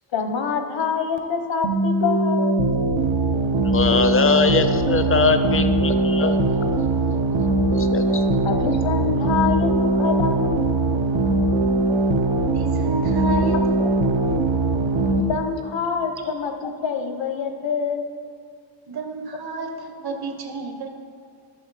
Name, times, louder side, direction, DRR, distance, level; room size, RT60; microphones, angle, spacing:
voice 1, 0.1-2.6 8.4-10.8 13.2-13.3 15.2-18.1, left 6 dB, 80° left, 6 dB, 1.0 m, -26 dB
sound 1, 1.6-15.2, right 2 dB, 80° right, 0.8 m, -21 dB
voice 2, 3.7-6.4 7.7-8.2, left 5 dB, 30° left, 9 dB, 0.4 m, -21 dB
voice 3, 12.5-13.7 14.3-14.4 18.9-20.9, right 3 dB, 55° right, 4 dB, 1.0 m, -30 dB
11.5 x 6.8 x 4.0 m, 2.3 s
wide cardioid pair, 170°, 44 cm